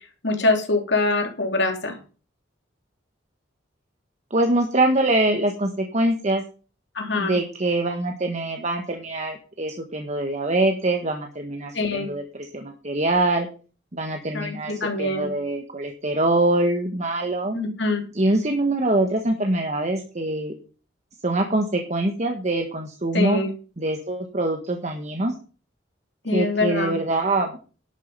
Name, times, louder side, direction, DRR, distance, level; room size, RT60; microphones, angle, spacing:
voice 1, 0.2-1.9 6.9-7.4 11.7-12.1 14.3-15.3 17.5-18.0 23.1-23.5 26.2-26.9, left 3 dB, 65° left, 3 dB, 3.1 m, -24 dB
voice 2, 4.3-6.4 7.2-13.5 13.9-14.7 15.0-17.6 18.1-20.5 21.2-23.4 23.8-25.3 26.3-27.6, right 2 dB, 40° right, 4 dB, 1.4 m, -24 dB
11.0 x 8.4 x 5.6 m, 0.37 s
head